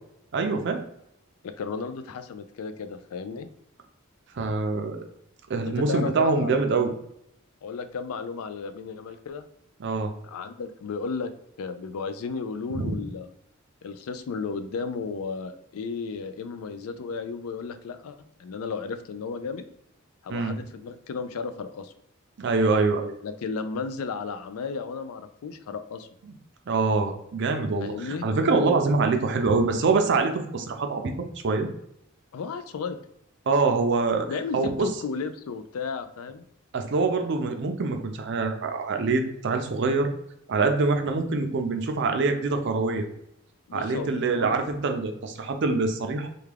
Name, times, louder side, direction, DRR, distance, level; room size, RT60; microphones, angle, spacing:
voice 1, 0.3-0.8 4.4-5.0 5.5-6.9 9.8-10.1 12.7-13.0 20.3-20.6 22.4-23.1 26.3-26.4 26.7-31.1 31.4-31.7 33.5-34.3 34.5-34.9 36.7-40.1 40.5-43.1 43.7-46.3, right 3 dB, 55° right, 5 dB, 0.4 m, -25 dB
voice 2, 1.4-3.5 5.6-6.6 7.6-9.4 10.2-11.3 11.6-13.3 13.8-19.6 20.2-21.9 23.2-26.1 27.8-28.3 32.3-33.0 34.3-36.4 43.7-44.6, left 5 dB, 80° left, 10 dB, 0.4 m, -34 dB
3.4 x 2.2 x 3.3 m, 0.77 s
head